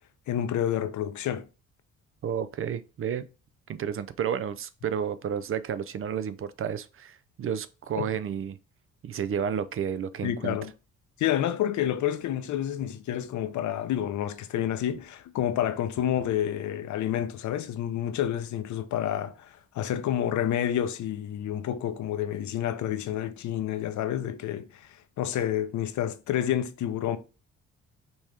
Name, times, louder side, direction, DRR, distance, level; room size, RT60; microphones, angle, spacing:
voice 1, 0.3-1.4 8.0-8.1 10.2-10.7 11.2-24.9 25.2-27.2, left 10 dB, 70° left, 0.7 m, -29 dB
voice 2, 2.2-3.3 3.7-8.6 9.0-10.6, right 8 dB, 45° right, 0.5 m, -31 dB
5.4 x 3.0 x 3.3 m
cardioid pair, 90°, 30 cm